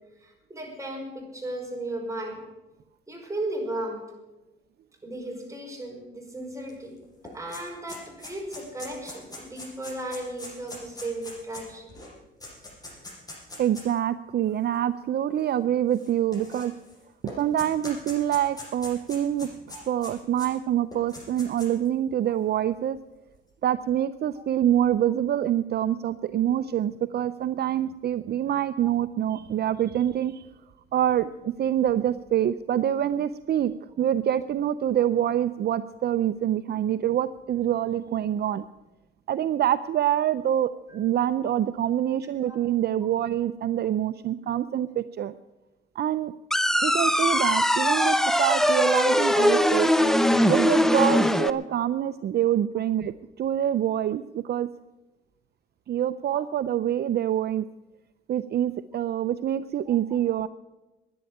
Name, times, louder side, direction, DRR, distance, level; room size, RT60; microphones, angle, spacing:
voice 1, 0.2-2.4 3.1-4.0 5.0-6.9 7.3-11.9 18.5-18.6 19.7-19.8 22.3-22.4 24.4-24.5 28.8-28.9 41.4-41.5 42.4-42.6 48.4-48.5 56.3-56.4 59.9-60.0, right 1 dB, 15° right, 1 dB, 5.3 m, -35 dB
sound 1, 6.7-6.8 7.0-14.0 14.7-14.8 15.9-16.9 17.3-20.5 20.9-21.9, left 2 dB, 20° left, 7.6 m, -42 dB
voice 2, 13.6-16.7 17.2-19.5 19.9-23.0 23.6-30.4 30.9-33.7 34.0-38.6 39.3-45.3 46.0-46.3 46.8-49.9 50.5-54.7 55.9-57.7 58.3-60.5, right 11 dB, 55° right, 14 dB, 0.5 m, -26 dB
sound 2, 46.5-51.5, equal, ahead, 0.8 m, -21 dB
11.5 x 10.5 x 10.0 m, 1.1 s
cardioid pair, 90°, 20 cm